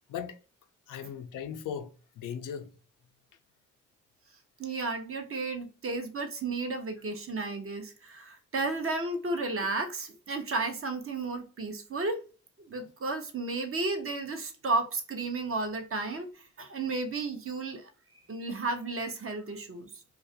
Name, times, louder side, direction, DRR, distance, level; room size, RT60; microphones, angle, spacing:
voice 1, 0.9-2.7, left 8 dB, 80° left, 0.5 m, -38 dB
voice 2, 4.6-12.2 12.7-17.9 18.3-19.9, right 3 dB, 45° right, 0.7 m, -33 dB
2.3 x 2.0 x 2.7 m
cardioid pair, 55°, 32 cm